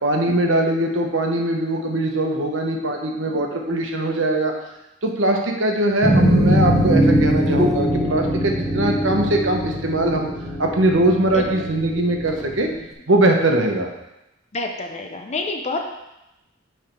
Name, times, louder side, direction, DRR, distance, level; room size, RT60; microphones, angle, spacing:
voice 1, 0.0-4.5 5.0-10.3 10.6-12.7 13.1-13.9, right 1 dB, 75° right, 2 dB, 1.1 m, -21 dB
voice 2, 2.8-3.5 11.3-11.4 13.6-13.7 14.5-15.9, left 3 dB, 35° left, 3 dB, 0.8 m, -29 dB
sound 1, 6.0-12.6, equal, ahead, 0.9 m, -21 dB
9.3 x 3.5 x 4.5 m, 0.91 s
head